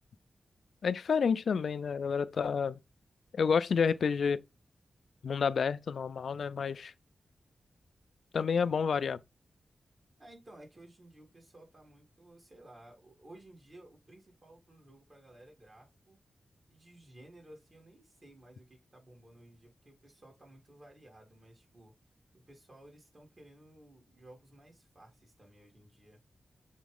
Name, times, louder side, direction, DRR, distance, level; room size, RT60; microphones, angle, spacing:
voice 1, 0.8-2.8 3.3-4.4 5.2-6.9 8.3-9.2, left 6 dB, 80° left, 0.4 m, -29 dB
voice 2, 10.2-16.2 16.7-21.9 22.3-26.2, right 1 dB, 40° right, 3.8 m, -56 dB
7.1 x 4.0 x 3.7 m
cardioid pair, 75°, 0 cm